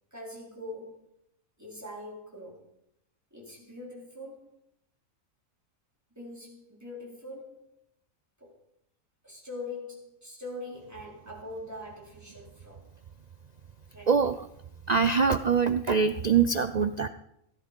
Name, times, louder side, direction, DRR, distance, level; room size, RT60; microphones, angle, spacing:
voice 1, 0.1-1.1 1.6-2.7 3.3-4.6 6.2-7.8 8.4-8.6 9.2-12.9 13.9-14.1, left 2 dB, 10° right, -3 dB, 4.1 m, -43 dB
voice 2, 14.9-17.1, right 6 dB, 85° right, 11 dB, 0.3 m, -23 dB
16.5 x 10.5 x 5.3 m, 0.78 s
omnidirectional pair, 1.5 m